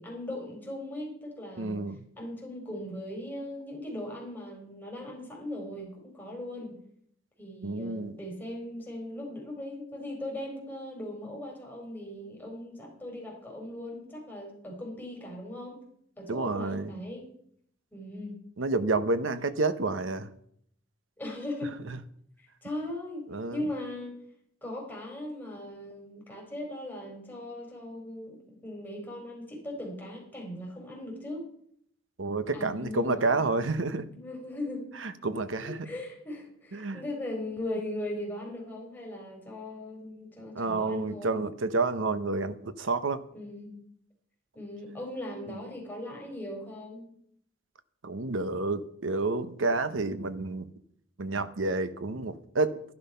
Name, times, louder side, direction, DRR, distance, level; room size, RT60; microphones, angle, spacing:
voice 1, 0.0-6.8 7.4-15.8 16.2-17.3 17.9-18.4 21.2-21.8 22.4-23.3 23.5-24.1 24.6-31.4 32.5-35.0 35.6-41.4 43.3-43.8 44.5-47.1, left 1 dB, 10° left, 4.5 m, -39 dB
voice 2, 1.6-2.0 7.6-8.2 16.3-17.0 18.6-20.3 23.3-23.6 32.2-34.1 35.0-35.9 36.7-37.0 40.5-43.2 45.5-45.6 48.0-50.7 51.2-52.8, right 3 dB, 85° right, 0.9 m, -29 dB
12.5 x 11.0 x 5.6 m
head